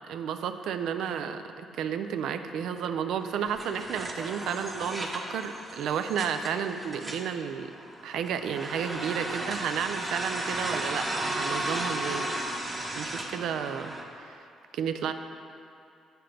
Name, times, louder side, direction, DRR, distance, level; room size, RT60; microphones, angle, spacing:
voice 1, 0.1-7.7 8.0-12.3 12.9-14.5 14.7-15.1, right 7 dB, 80° right, 9 dB, 0.3 m, -32 dB
sound 1, 3.2-14.0, right 1 dB, 25° right, 0.9 m, -35 dB
8.0 x 5.8 x 3.3 m, 2.6 s
cardioid pair, 90°, 0 cm